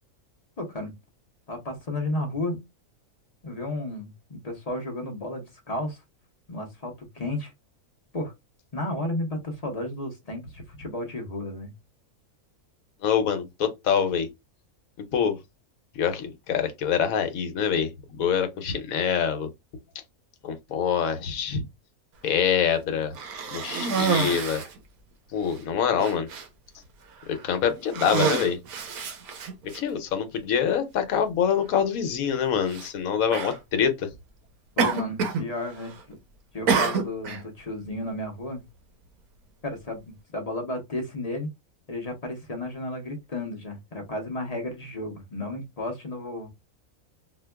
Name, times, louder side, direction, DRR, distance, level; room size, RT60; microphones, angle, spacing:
voice 1, 0.6-0.9 1.5-2.6 3.4-6.0 6.5-7.5 8.1-8.3 8.7-11.7 34.8-36.2 36.5-38.6 39.6-41.5 41.9-46.5, left 1 dB, 35° left, 0.6 m, -33 dB
voice 2, 13.0-14.3 15.0-15.4 15.9-19.5 20.4-21.6 22.2-23.1 23.5-24.6 25.3-26.3 27.3-28.6 29.7-34.1, left 7 dB, 75° left, 1.1 m, -25 dB
Cough, 23.1-24.8 25.5-25.6 26.0-26.5 27.2-27.5 27.9-29.8 30.7-30.8 32.7-32.9 33.3-33.6 34.8-35.5 35.7-36.1 36.7-37.4, right 5 dB, 85° right, 1.2 m, -27 dB
4.3 x 2.2 x 2.2 m
omnidirectional pair, 1.5 m